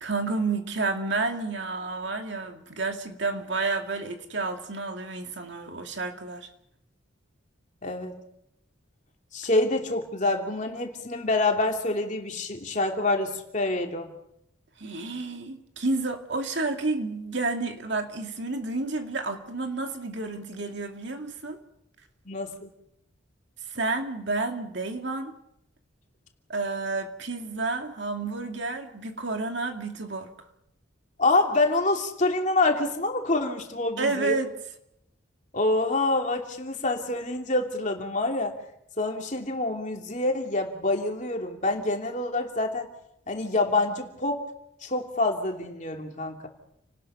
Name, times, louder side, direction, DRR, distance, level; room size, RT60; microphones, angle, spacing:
voice 1, 0.0-6.5 14.8-21.6 23.7-25.3 26.5-30.3 34.0-34.5, right 3 dB, 60° right, 5 dB, 2.4 m, -30 dB
voice 2, 7.8-8.2 9.3-14.1 22.3-22.7 31.2-34.4 35.5-38.5 39.0-42.9 43.3-44.4 44.8-46.5, left 2 dB, 35° left, 3 dB, 2.9 m, -26 dB
30.0 x 19.0 x 5.7 m, 0.77 s
head